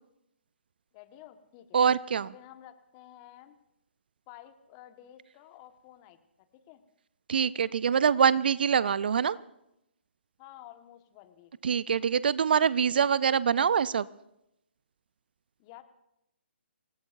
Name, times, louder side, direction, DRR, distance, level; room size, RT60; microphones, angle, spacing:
voice 1, 0.9-1.8 2.3-3.6 4.3-6.2 6.7-6.8 10.4-11.5 15.6-15.8, left 12 dB, 25° left, 8 dB, 1.5 m, -51 dB
voice 2, 1.7-2.3 7.3-9.4 11.6-14.1, right 7 dB, 50° right, 19 dB, 0.5 m, -24 dB
27.5 x 18.0 x 2.6 m, 0.83 s
figure-of-eight pair, 135°, 6 cm